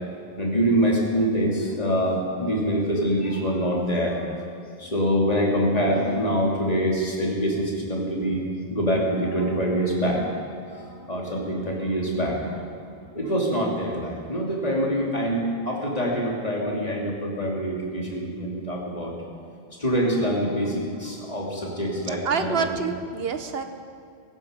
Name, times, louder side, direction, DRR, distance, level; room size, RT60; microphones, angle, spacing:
voice 1, 0.4-4.2 4.8-8.4 8.7-10.3 10.7-12.5 13.1-19.1 19.8-22.6, equal, 40° left, -2 dB, 3.0 m, -25 dB
voice 2, 22.0-23.6, right 5 dB, 70° right, 8 dB, 1.3 m, -27 dB
17.5 x 15.0 x 5.2 m, 2.4 s
omnidirectional pair, 1.1 m